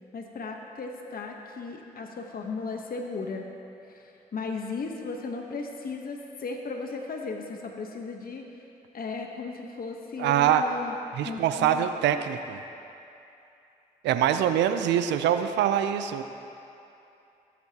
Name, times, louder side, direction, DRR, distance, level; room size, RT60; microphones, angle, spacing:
voice 1, 0.1-3.5 3.9-8.5 8.9-11.0 11.2-11.9, left 4 dB, 55° left, 2 dB, 1.1 m, -36 dB
voice 2, 10.2-10.6 11.1-12.6 14.0-16.3, right 10 dB, 85° right, 9 dB, 0.5 m, -24 dB
17.5 x 8.5 x 2.9 m, 2.7 s
supercardioid pair, 45°, 18 cm